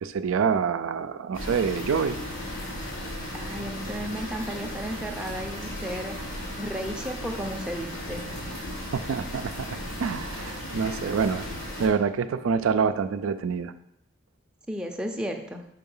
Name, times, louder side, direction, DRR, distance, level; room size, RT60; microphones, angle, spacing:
voice 1, 0.0-2.2 8.9-11.5 11.8-13.7, right 6 dB, 80° right, 10 dB, 0.4 m, -26 dB
sound 1, 1.3-11.9, left 1 dB, 80° left, 2.9 m, -36 dB
voice 2, 3.3-6.1 6.6-8.2 14.7-15.7, equal, 5° right, 2 dB, 0.5 m, -34 dB
5.8 x 4.7 x 5.4 m, 0.76 s
head